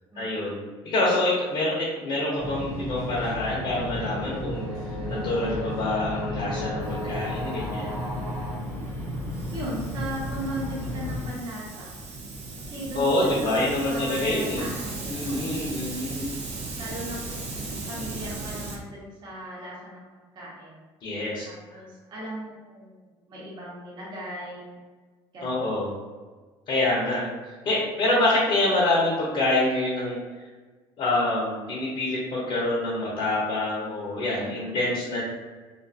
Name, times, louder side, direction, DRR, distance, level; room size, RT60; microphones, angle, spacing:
voice 1, 0.1-4.6 5.1-8.0 12.9-14.7 15.1-16.4 21.0-21.8 25.4-26.0 26.7-27.3 27.6-30.2 31.0-35.2, left 2 dB, 45° left, -6 dB, 0.8 m, -26 dB
sound 1, 2.0-8.6, left 2 dB, 10° right, 1.0 m, -37 dB
sound 2, 2.4-11.3, left 1 dB, 85° right, 1.0 m, -34 dB
Hiss, 6.8-18.8, right 3 dB, 65° right, 0.7 m, -37 dB
voice 2, 9.5-12.0 12.6-15.5 16.8-20.0 20.3-20.8 21.1-24.8 25.3-25.7 34.4-34.8, equal, 40° right, -6 dB, 1.0 m, -38 dB
2.5 x 2.5 x 2.5 m, 1.4 s
supercardioid pair, 100°, 11 cm